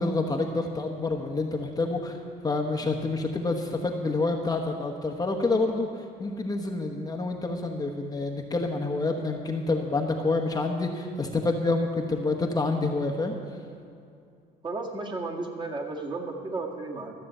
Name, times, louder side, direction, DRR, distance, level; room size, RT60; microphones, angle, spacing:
voice 1, 0.0-2.2 2.4-13.3, left 3 dB, 20° left, 2 dB, 1.1 m, -28 dB
voice 2, 14.6-17.1, right 3 dB, 25° right, 0 dB, 1.9 m, -33 dB
13.5 x 6.8 x 7.8 m, 2.4 s
cardioid pair, 110°, 17 cm